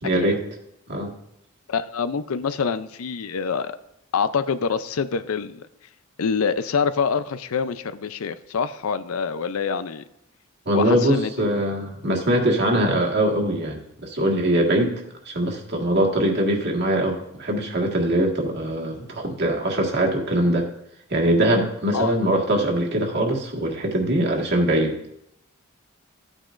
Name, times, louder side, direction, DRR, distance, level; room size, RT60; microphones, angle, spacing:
voice 1, 0.0-0.4 0.9-1.1 10.6-20.6 21.1-25.0, right 1 dB, 55° right, 0 dB, 1.7 m, -22 dB
voice 2, 1.7-3.8 4.1-5.6 6.2-10.0 10.7-11.5 21.9-22.1, left 6 dB, 80° left, 13 dB, 0.5 m, -26 dB
13.5 x 9.1 x 2.5 m, 0.81 s
head